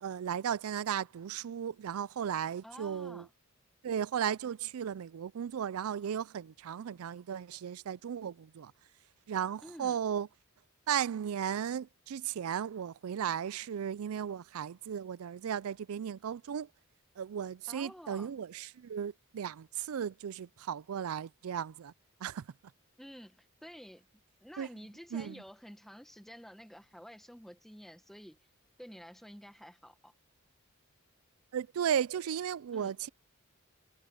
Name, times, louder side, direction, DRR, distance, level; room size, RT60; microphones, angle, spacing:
voice 1, 0.0-3.3 3.8-8.7 9.3-10.3 10.9-16.7 17.2-21.9 22.2-22.5 24.6-24.7 25.1-25.4 31.5-33.1, right 8 dB, 75° right, 0.4 m, -35 dB
voice 2, 2.6-3.3 9.6-10.0 17.7-18.3 23.0-24.0 24.4-28.4 28.8-30.1 32.7-32.9, equal, ahead, 1.4 m, -50 dB
head